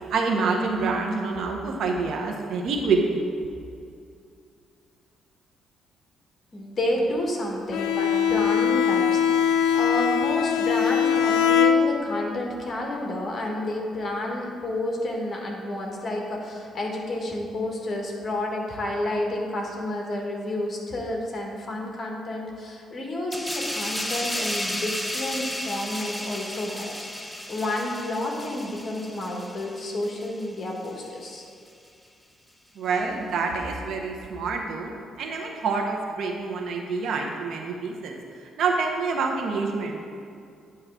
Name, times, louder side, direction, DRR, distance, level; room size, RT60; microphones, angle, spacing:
voice 1, 0.1-3.2 32.8-34.9 35.2-38.2 38.6-40.1, right 4 dB, 70° right, 2 dB, 0.9 m, -27 dB
voice 2, 6.5-31.4, left 1 dB, 40° left, 0 dB, 1.4 m, -30 dB
Bowed string instrument, 7.7-12.3, left 8 dB, 90° left, 0.4 m, -22 dB
sound 1, 23.3-30.5 30.8-31.1, left 1 dB, 5° left, 0.6 m, -33 dB
9.3 x 3.1 x 6.1 m, 2.4 s
cardioid pair, 90°, 0 cm